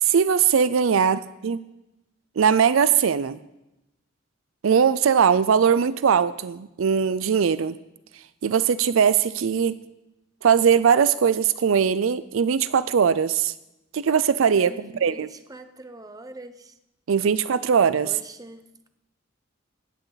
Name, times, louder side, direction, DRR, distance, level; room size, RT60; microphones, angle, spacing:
voice 1, 0.0-1.6 2.4-3.4 4.6-7.8 8.1-9.8 10.4-13.5 13.9-15.3 17.1-18.1, right 7 dB, 80° right, 16 dB, 0.4 m, -20 dB
voice 2, 1.0-1.3 14.6-16.8 18.0-18.6, right 2 dB, 20° right, 9 dB, 0.8 m, -43 dB
16.5 x 8.9 x 4.0 m, 0.93 s
head